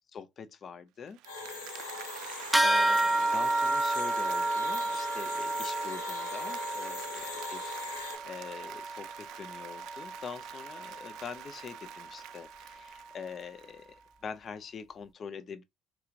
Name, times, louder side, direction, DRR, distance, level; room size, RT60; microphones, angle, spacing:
voice 1, 0.1-1.2 2.2-13.9 14.2-15.6, left 6 dB, 45° left, 0.7 m, -44 dB
Applause, 1.1-14.1, right 14 dB, 70° right, 0.3 m, -47 dB
sound 1, 1.2-8.2, left 4 dB, 90° left, 1.1 m, -41 dB
sound 2, 2.5-12.3, right 2 dB, 10° right, 0.5 m, -31 dB
4.6 x 2.8 x 2.5 m
hypercardioid pair, 65°, 0 cm